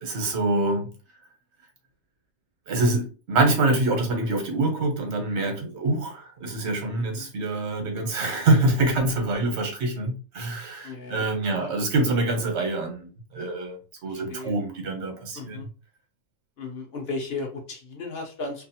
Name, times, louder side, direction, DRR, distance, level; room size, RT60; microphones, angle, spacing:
voice 1, 0.0-0.9 2.7-15.7, right 2 dB, 55° right, 1.2 m, -25 dB
voice 2, 7.0-7.3 10.8-11.2 11.5-11.7 12.0-12.2 14.0-14.5 15.3-15.7 16.6-18.7, left 3 dB, 55° left, 0.8 m, -35 dB
2.6 x 2.5 x 2.7 m
omnidirectional pair, 1.5 m